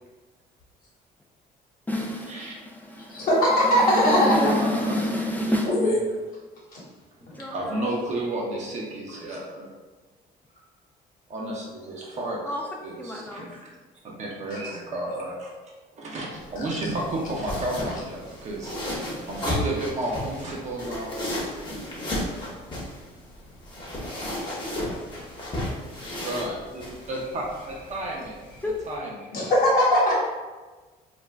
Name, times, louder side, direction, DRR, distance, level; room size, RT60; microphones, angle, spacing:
voice 1, 1.9-3.3 3.7-5.7 7.2-8.1 12.4-12.6 13.0-13.5 25.7-25.8 28.6-28.7, left 1 dB, 10° left, -1 dB, 0.3 m, -29 dB
voice 2, 3.1-4.7 5.7-5.9 14.5-14.7 29.3-30.1, equal, 55° left, -5 dB, 1.1 m, -20 dB
voice 3, 4.6-5.0 5.5-6.0 7.5-9.7 11.3-12.5 12.8-13.6 14.0-15.5 15.9-21.2 26.2-28.4 28.9-29.1, right 1 dB, 45° right, -3 dB, 0.6 m, -32 dB
sound 1, 16.3-28.9, left 1 dB, 25° left, 0.8 m, -34 dB
2.4 x 2.1 x 3.2 m, 1.3 s
cardioid pair, 110°, 17 cm